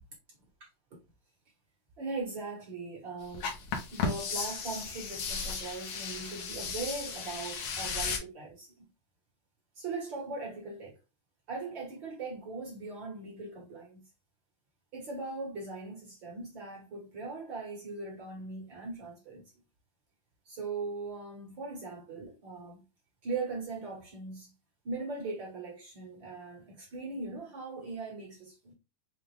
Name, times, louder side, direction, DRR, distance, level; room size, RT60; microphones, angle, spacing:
voice 1, 2.0-3.5 3.9-8.9 9.7-11.0 11.5-14.0 14.9-19.4 20.4-22.8 23.2-24.5 24.8-28.7, right 3 dB, 50° right, 1.5 m, -40 dB
sound 1, 3.3-8.2, left 5 dB, 65° left, 1.6 m, -35 dB
5.6 x 2.4 x 3.2 m
omnidirectional pair, 3.6 m